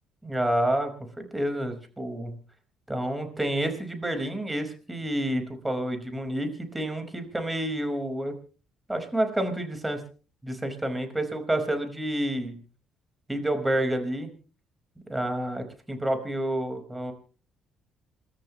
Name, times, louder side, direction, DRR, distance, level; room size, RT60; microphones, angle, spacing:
voice 1, 0.2-2.4 2.9-8.3 8.9-10.0 10.4-12.6 13.3-14.3 15.1-17.1, right 1 dB, 15° right, 7 dB, 5.0 m, -29 dB
28.5 x 13.5 x 3.2 m, 0.37 s
supercardioid pair, 60°, 0 cm